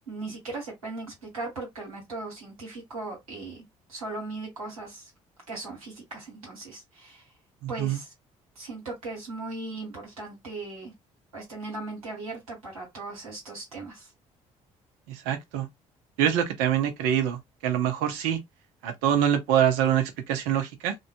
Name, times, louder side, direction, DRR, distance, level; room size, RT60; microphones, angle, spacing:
voice 1, 0.1-3.6 3.9-5.1 5.5-7.3 7.7-8.1 8.5-10.9 11.3-14.1, right 3 dB, 85° right, 1.4 m, -38 dB
voice 2, 7.6-8.0 15.1-15.7 16.2-18.4 18.8-21.0, right 10 dB, 70° right, 0.6 m, -25 dB
2.5 x 2.2 x 2.5 m
figure-of-eight pair, 45°, 18 cm